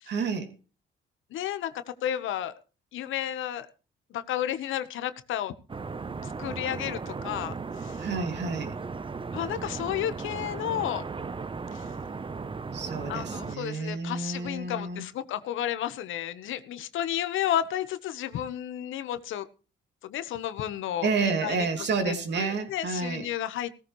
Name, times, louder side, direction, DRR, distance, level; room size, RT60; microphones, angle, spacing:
voice 1, 0.1-0.5 8.0-8.8 12.7-15.1 21.0-23.3, right 4 dB, 60° right, 2.8 m, -30 dB
voice 2, 1.3-2.5 2.9-3.7 4.1-5.5 6.2-7.5 7.8-8.0 9.3-11.0 11.7-11.8 13.1-19.5 20.0-23.7, left 11 dB, 80° left, 1.2 m, -32 dB
sound 1, 5.7-13.6, right 4 dB, 25° right, 0.9 m, -36 dB
17.0 x 14.5 x 3.2 m
cardioid pair, 90°, 20 cm